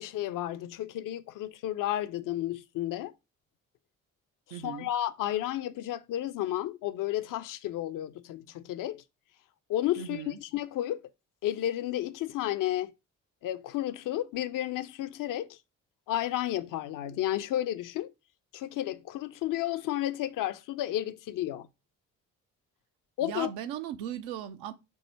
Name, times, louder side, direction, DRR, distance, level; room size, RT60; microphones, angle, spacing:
voice 1, 0.0-3.1 4.5-9.0 9.7-11.0 11.4-12.9 13.4-15.6 16.1-18.1 18.5-21.7 23.2-23.5, left 13 dB, 50° left, 0.5 m, -32 dB
voice 2, 4.5-4.9 10.0-10.4 23.2-24.7, right 10 dB, 75° right, 0.6 m, -37 dB
4.6 x 2.6 x 4.1 m
hypercardioid pair, 40°, 41 cm